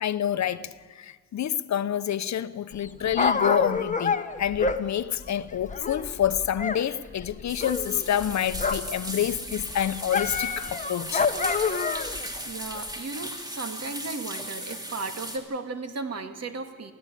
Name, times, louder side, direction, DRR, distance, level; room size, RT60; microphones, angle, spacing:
voice 1, 0.0-11.3, left 10 dB, 65° left, 0.8 m, -28 dB
Dog, 2.7-6.8 7.1-9.0 9.3-12.2 12.9-13.0, left 4 dB, 25° left, 0.9 m, -28 dB
sound 1, 7.5-15.4, equal, 10° right, 2.6 m, -37 dB
voice 2, 12.5-16.9, right 3 dB, 55° right, 2.0 m, -35 dB
21.0 x 15.5 x 10.0 m
wide cardioid pair, 150°, 30 cm